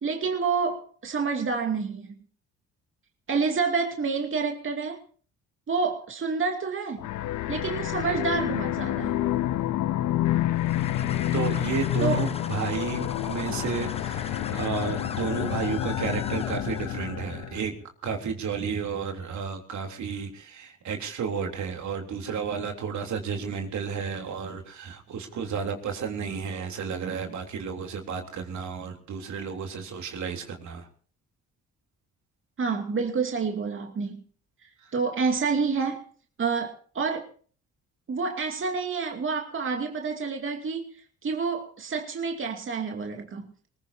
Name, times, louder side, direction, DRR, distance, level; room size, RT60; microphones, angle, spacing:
voice 1, 0.0-2.2 3.3-5.0 5.7-7.0 7.5-9.3 12.0-12.2 32.6-34.2 34.9-36.0 36.4-37.3 38.1-41.0 41.2-43.5, right 5 dB, 40° right, 2.6 m, -28 dB
sound 1, 7.0-17.6, left 13 dB, 80° left, 0.9 m, -28 dB
sound 2, 10.6-17.1, left 3 dB, 20° left, 1.1 m, -40 dB
voice 2, 11.3-17.8 18.0-30.9 34.8-34.9, right 6 dB, 70° right, 3.4 m, -32 dB
21.0 x 20.0 x 2.8 m
cardioid pair, 90°, 30 cm